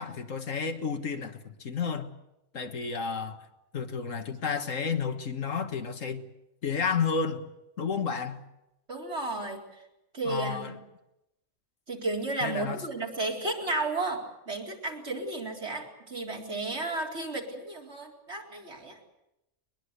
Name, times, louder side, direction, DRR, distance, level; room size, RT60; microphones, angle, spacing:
voice 1, 0.0-2.1 2.5-3.4 3.7-6.2 6.6-7.4 7.8-8.4 10.3-10.7 12.4-12.8, left 5 dB, 85° left, 1.9 m, -31 dB
voice 2, 8.9-9.6 10.1-10.8 11.9-19.0, right 2 dB, 60° right, 4.4 m, -33 dB
22.0 x 21.5 x 8.2 m
omnidirectional pair, 1.3 m